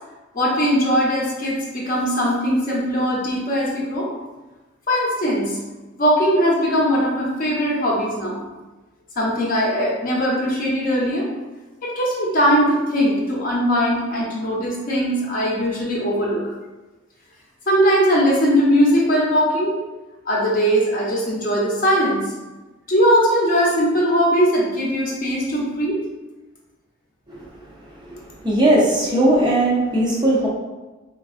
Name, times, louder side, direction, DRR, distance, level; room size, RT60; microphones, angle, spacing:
voice 1, 0.3-4.1 4.9-5.6 6.0-8.4 9.2-11.3 11.8-16.5 17.7-19.8 20.2-22.3 22.9-26.0, equal, 45° left, -4 dB, 0.6 m, -20 dB
voice 2, 28.4-30.5, right 1 dB, 20° right, -5 dB, 0.4 m, -18 dB
3.3 x 2.3 x 2.4 m, 1.2 s
head